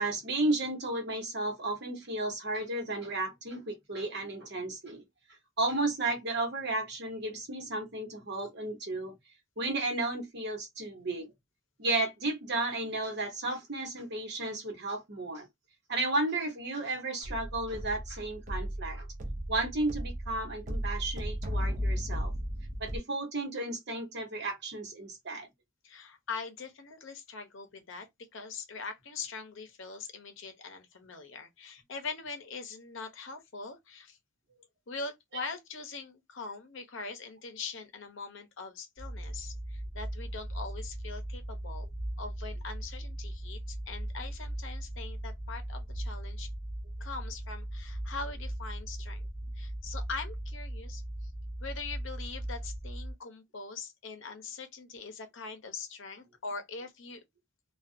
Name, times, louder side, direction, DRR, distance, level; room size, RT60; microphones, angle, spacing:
voice 1, 0.0-5.0 5.6-9.1 9.6-11.3 11.8-15.5 15.9-19.1 19.5-22.3 22.8-25.5, right 2 dB, 55° right, 1.0 m, -33 dB
sound 1, 17.2-23.0, equal, 40° right, 0.5 m, -35 dB
voice 2, 25.8-34.2 34.9-41.9 42.2-46.5 47.0-49.3 49.5-51.3 51.6-57.2, left 4 dB, 65° left, 0.7 m, -42 dB
sound 2, 39.0-53.1, right 1 dB, 15° left, 1.0 m, -38 dB
2.4 x 2.3 x 2.5 m
head